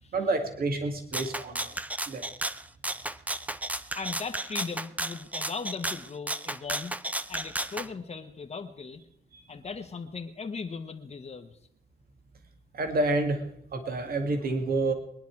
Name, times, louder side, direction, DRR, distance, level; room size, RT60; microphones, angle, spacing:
voice 1, 0.1-1.8 2.1-2.3 9.3-9.4 12.7-13.4 13.7-14.9, right 2 dB, 60° right, 5 dB, 2.1 m, -28 dB
Rattle (instrument), 1.1-7.9, right 1 dB, 10° right, 0.5 m, -33 dB
voice 2, 3.9-6.9 7.3-9.0 9.5-11.6, left 4 dB, 40° left, 6 dB, 1.3 m, -38 dB
23.0 x 10.5 x 4.7 m, 0.73 s
wide cardioid pair, 135°, 17 cm